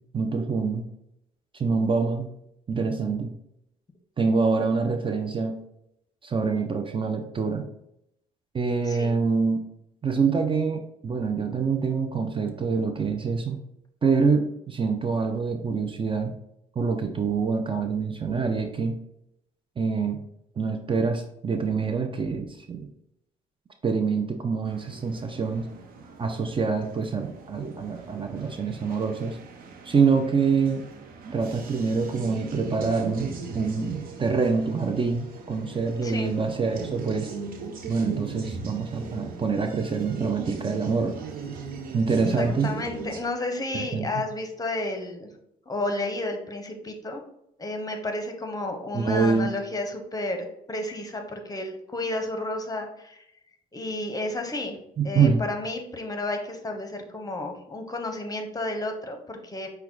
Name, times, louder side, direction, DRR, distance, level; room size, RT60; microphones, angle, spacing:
voice 1, 0.1-0.9 1.5-2.3 2.7-3.3 4.2-5.6 6.2-7.6 8.5-9.6 10.0-13.6 14.0-16.3 16.8-19.0 19.8-20.2 20.6-22.9 23.8-25.7 26.2-29.4 29.9-30.8 31.2-37.3 37.9-41.1 41.9-42.7 43.7-44.2 48.9-49.5 55.0-55.4, right 5 dB, 30° right, 6 dB, 0.5 m, -25 dB
sound 1, 24.6-43.2, right 4 dB, 60° right, 0.7 m, -39 dB
voice 2, 36.0-36.3 42.3-45.3 45.7-47.2 47.6-53.2 53.7-54.8 55.0-59.7, left 2 dB, 20° left, 5 dB, 0.9 m, -32 dB
5.6 x 2.3 x 3.8 m, 0.77 s
supercardioid pair, 65°, 16 cm